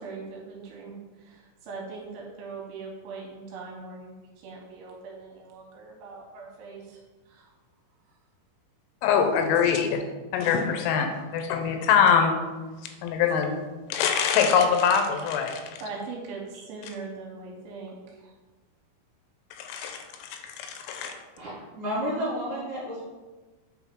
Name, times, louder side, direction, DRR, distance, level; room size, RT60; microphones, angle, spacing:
voice 1, 0.0-7.0 7.3-7.5 15.8-18.3, right 4 dB, 80° right, -1 dB, 3.0 m, -41 dB
voice 2, 9.0-10.0 10.3-12.3 13.0-13.6 13.9-15.6 19.5-21.1, left 7 dB, 85° left, 5 dB, 3.2 m, -23 dB
voice 3, 21.4-23.1, equal, 50° right, -9 dB, 2.8 m, -31 dB
8.0 x 3.8 x 4.3 m, 1.3 s
omnidirectional pair, 5.9 m